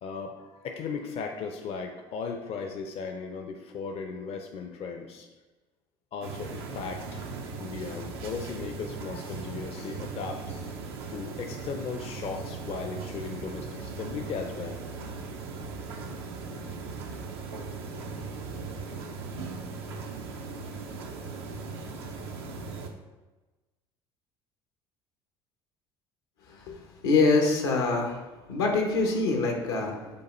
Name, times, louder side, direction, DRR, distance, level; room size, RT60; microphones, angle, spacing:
voice 1, 0.0-5.3 6.1-7.3 7.5-10.8 11.1-14.8, left 5 dB, 50° left, 4 dB, 0.5 m, -37 dB
sound 1, 6.2-22.9, right 4 dB, 85° right, 0.5 m, -38 dB
voice 2, 27.0-28.2 28.5-30.1, left 3 dB, 85° left, 2 dB, 0.7 m, -24 dB
5.3 x 2.3 x 4.2 m, 1.2 s
hypercardioid pair, 65°, 13 cm